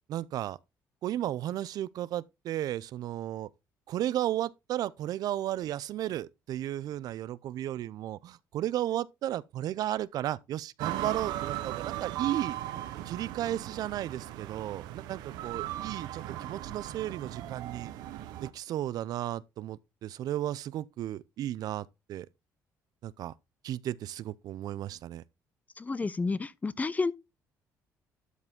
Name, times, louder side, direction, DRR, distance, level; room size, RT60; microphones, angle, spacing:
voice 1, 0.1-0.6 1.0-3.5 3.9-12.6 13.1-17.9 18.4-22.3 23.0-23.3 23.6-25.2, right 12 dB, 65° right, 0.4 m, -34 dB
sound 1, 10.8-18.5, right 13 dB, 85° right, 0.9 m, -38 dB
voice 2, 25.8-27.1, left 3 dB, 20° left, 0.6 m, -30 dB
12.5 x 4.8 x 3.6 m
cardioid pair, 90°, 7 cm